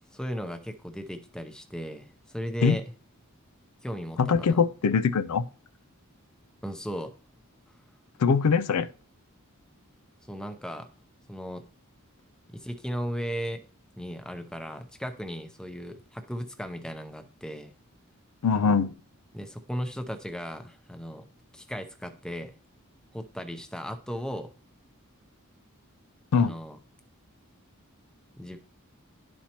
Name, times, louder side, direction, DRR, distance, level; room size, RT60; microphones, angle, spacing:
voice 1, 0.1-2.8 3.8-4.6 6.6-7.1 10.3-10.9 11.3-11.7 12.5-13.6 14.0-17.7 19.3-21.3 21.5-22.5 23.1-24.5 26.3-26.8 28.4-28.6, equal, 5° left, 0.6 m, -36 dB
voice 2, 4.2-5.5 8.2-8.9 18.4-18.9 26.3-26.5, left 5 dB, 90° left, 0.4 m, -22 dB
11.5 x 4.3 x 2.9 m
head